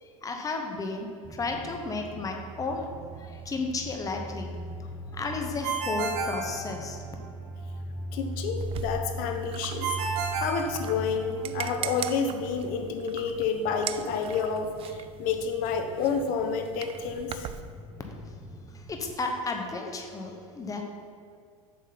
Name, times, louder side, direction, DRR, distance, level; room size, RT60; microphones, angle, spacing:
voice 1, 0.0-2.8 3.1-4.5 5.1-7.0 18.7-20.8, left 3 dB, 20° left, 3 dB, 1.0 m, -33 dB
sound 1, 1.2-19.1, right 1 dB, 10° right, 0.8 m, -40 dB
Ringtone, 5.6-7.3 9.8-11.4, right 5 dB, 60° right, 1.4 m, -31 dB
voice 2, 8.1-10.0 10.4-17.5, left 5 dB, 55° left, 5 dB, 0.8 m, -29 dB
sound 2, 8.6-17.6, right 10 dB, 35° right, 0.4 m, -41 dB
7.5 x 6.2 x 4.0 m, 2.2 s
hypercardioid pair, 95°, 17 cm